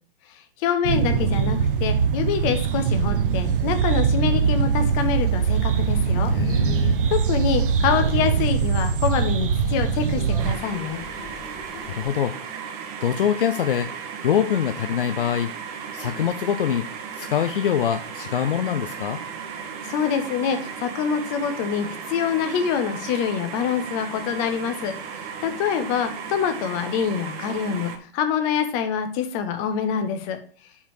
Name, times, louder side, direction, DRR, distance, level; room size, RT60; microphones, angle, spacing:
voice 1, 0.6-6.3 7.1-11.0 19.8-30.4, left 7 dB, 35° left, 8 dB, 1.2 m, -25 dB
sound 1, 0.8-10.5, right 6 dB, 60° right, 0.9 m, -22 dB
sound 2, 5.0-12.1, left 1 dB, 10° left, 2.3 m, -44 dB
voice 2, 6.3-7.0 11.9-12.3 13.0-13.9 14.2-15.5 15.9-16.9 17.2-19.2, left 9 dB, 60° left, 8 dB, 0.7 m, -24 dB
sound 3, 10.4-28.0, right 6 dB, 40° right, 1.3 m, -35 dB
5.7 x 4.5 x 6.4 m, 0.43 s
figure-of-eight pair, 110°, 30 cm